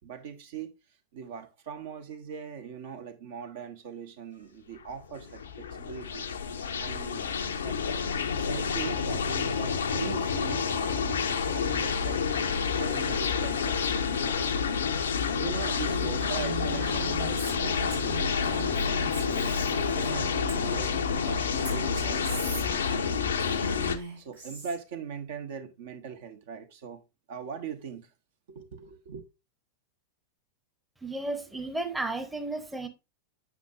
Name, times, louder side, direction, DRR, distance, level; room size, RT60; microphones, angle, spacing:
voice 1, 0.0-0.7 1.1-6.2 6.8-7.8 8.3-12.3 12.7-14.5 15.3-20.9 21.3-23.5 24.1-27.0 27.3-28.1 28.5-29.2, right 7 dB, 55° right, 0.9 m, -41 dB
sound 1, 4.9-24.0, left 6 dB, 65° left, 0.6 m, -29 dB
Female speech woman speaking, 15.8-21.2 21.6-24.8, right 3 dB, 80° right, 3.2 m, -40 dB
voice 2, 31.0-32.9, right 2 dB, 10° right, 0.8 m, -33 dB
7.2 x 5.7 x 2.5 m
figure-of-eight pair, 90°, 0 cm